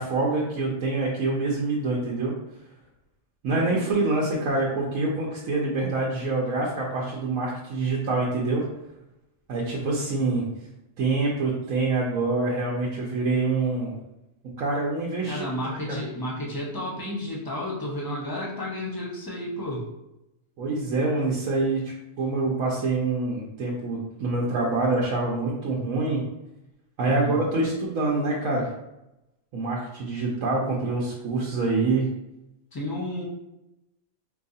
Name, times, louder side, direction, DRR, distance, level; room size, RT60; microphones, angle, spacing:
voice 1, 0.0-2.3 3.4-8.6 9.5-10.4 11.0-13.9 14.6-16.0 20.6-26.2 27.0-28.7 29.5-32.1, right 3 dB, 80° right, -4 dB, 1.1 m, -26 dB
voice 2, 15.3-19.8 27.1-27.4 32.7-33.2, left 1 dB, 20° left, -4 dB, 0.7 m, -32 dB
4.6 x 2.3 x 2.6 m, 0.90 s
omnidirectional pair, 1.4 m